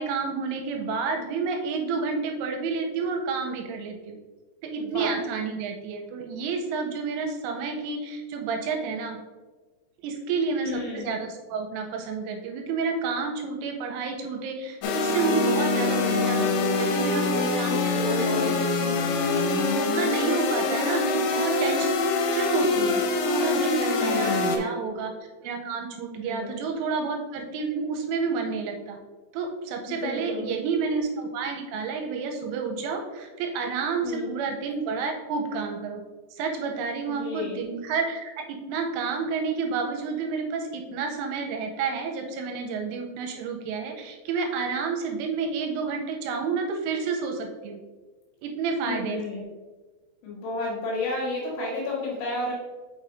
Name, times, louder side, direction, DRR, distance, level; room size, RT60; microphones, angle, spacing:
voice 1, 0.0-4.2 4.6-9.2 10.0-19.0 19.3-19.5 19.7-22.0 22.3-25.1 25.4-29.0 29.3-36.0 36.3-47.8 48.4-49.2, right 5 dB, 85° right, 3 dB, 3.1 m, -30 dB
voice 2, 4.8-5.2 7.0-7.2 10.6-11.1 17.8-19.1 24.0-24.6 26.1-26.5 29.9-30.5 34.0-34.3 37.1-37.6 48.8-49.5 50.2-52.5, left 2 dB, 70° left, -6 dB, 3.6 m, -32 dB
sound 1, 14.8-24.6, left 3 dB, 90° left, 3.3 m, -24 dB
6.6 x 6.0 x 2.5 m, 1.3 s
omnidirectional pair, 5.9 m